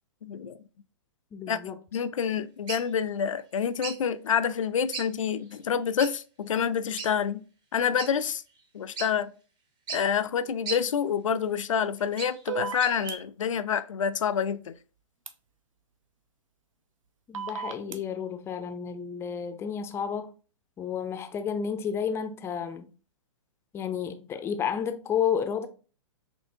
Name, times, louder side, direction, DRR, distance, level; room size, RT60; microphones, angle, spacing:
voice 1, 0.2-0.6 1.5-7.4 7.7-8.4 8.7-9.3 9.9-14.7, left 7 dB, 85° left, 0.4 m, -28 dB
voice 2, 1.3-1.8 17.3-20.3 20.8-22.9 23.7-25.7, left 7 dB, 15° left, 0.4 m, -31 dB
sound 1, 2.7-2.9 3.8-4.0 4.9-5.1 5.4-5.5 6.0-6.1 7.0-7.1 8.0-8.1 8.6-8.7 9.0-9.1 9.9-10.0 10.7-10.8 11.7-12.4 12.8-13.2, right 5 dB, 25° right, 0.9 m, -35 dB
sound 2, 12.5-13.1 15.3-15.4 17.3-18.0, right 6 dB, 90° right, 0.5 m, -33 dB
4.4 x 2.8 x 2.6 m
hypercardioid pair, 120°, 16 cm